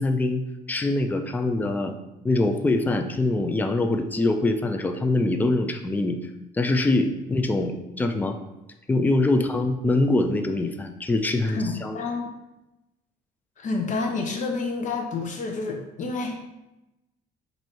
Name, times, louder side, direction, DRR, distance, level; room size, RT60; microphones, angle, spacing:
voice 1, 0.0-2.0 2.2-6.2 6.5-8.4 8.9-12.0, left 2 dB, 10° left, 6 dB, 0.4 m, -24 dB
voice 2, 11.5-12.3 13.6-16.4, left 3 dB, 50° left, 2 dB, 0.7 m, -29 dB
4.4 x 2.7 x 4.4 m, 0.96 s
cardioid pair, 110°, 17 cm